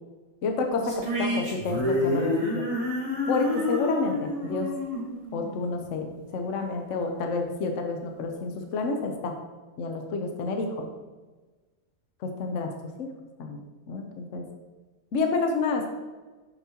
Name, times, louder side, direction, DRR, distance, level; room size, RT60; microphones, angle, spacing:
voice 1, 0.4-2.6 3.3-4.7 5.3-6.1 6.3-9.3 9.8-10.9 12.2-12.7 13.0-13.1 13.4-13.6 13.9-14.4 15.1-15.9, left 3 dB, 60° left, 4 dB, 0.9 m, -29 dB
sound 1, 0.8-6.2, left 1 dB, 45° right, 2.0 m, -29 dB
6.9 x 6.0 x 2.9 m, 1.3 s
omnidirectional pair, 1.8 m